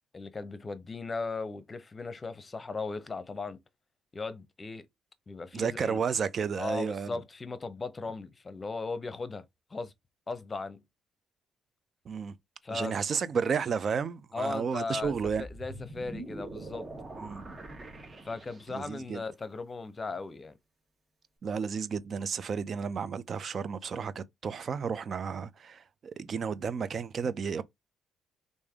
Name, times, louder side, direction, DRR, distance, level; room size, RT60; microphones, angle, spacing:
voice 1, 0.1-3.6 4.1-4.8 5.3-6.0 6.6-9.4 9.7-9.9 10.3-10.8 12.6-13.1 14.3-16.9 18.2-20.6, left 3 dB, 30° left, 0.7 m, -37 dB
voice 2, 5.5-7.2 12.1-12.4 12.7-15.5 17.2-17.4 18.7-19.2 21.4-27.6, right 6 dB, 55° right, 0.5 m, -32 dB
sound 1, 15.0-19.0, right 2 dB, 35° right, 1.1 m, -44 dB
3.3 x 2.6 x 3.5 m
supercardioid pair, 65°, 0 cm